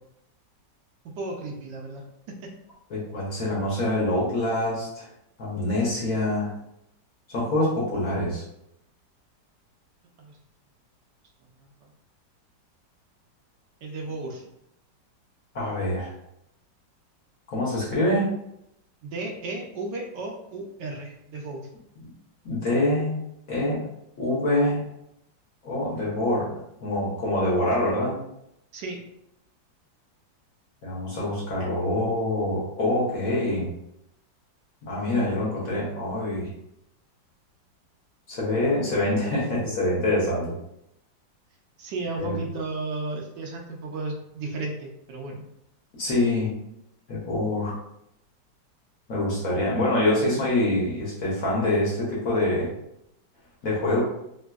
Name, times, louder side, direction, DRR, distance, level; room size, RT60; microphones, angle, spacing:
voice 1, 1.2-2.0 10.2-10.4 11.6-11.9 13.8-14.4 19.0-21.7 28.7-29.0 41.8-45.5, right 2 dB, 75° right, 1 dB, 1.1 m, -34 dB
voice 2, 2.9-5.1 5.4-6.5 7.3-8.4 15.5-16.1 17.5-18.3 22.4-23.1 23.5-23.8 24.2-24.8 25.6-26.5 26.8-28.2 30.8-33.7 34.9-36.5 38.3-40.5 42.2-42.4 46.0-46.6 47.1-47.8 49.1-52.7 53.6-54.0, left 1 dB, 55° left, -6 dB, 1.2 m, -25 dB
3.3 x 2.7 x 2.3 m, 0.79 s
omnidirectional pair, 2.0 m